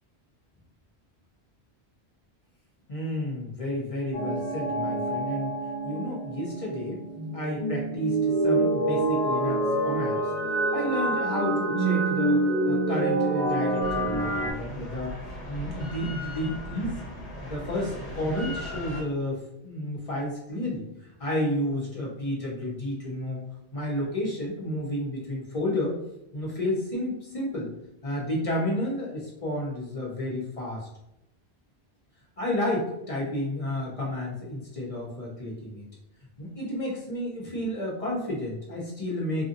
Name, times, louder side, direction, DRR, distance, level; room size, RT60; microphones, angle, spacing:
voice 1, 2.9-5.6 5.8-7.0 7.3-10.3 10.7-15.1 15.5-16.9 17.4-20.8 21.2-23.4 23.7-26.0 26.3-27.7 28.0-30.9 32.4-35.8 36.4-39.5, left 1 dB, 35° left, -5 dB, 0.7 m, -31 dB
sound 1, 4.1-14.5, right 2 dB, 15° left, 1.3 m, -26 dB
Drill, 13.8-19.0, equal, 80° left, 1.2 m, -38 dB
2.6 x 2.5 x 2.5 m, 0.86 s
omnidirectional pair, 1.1 m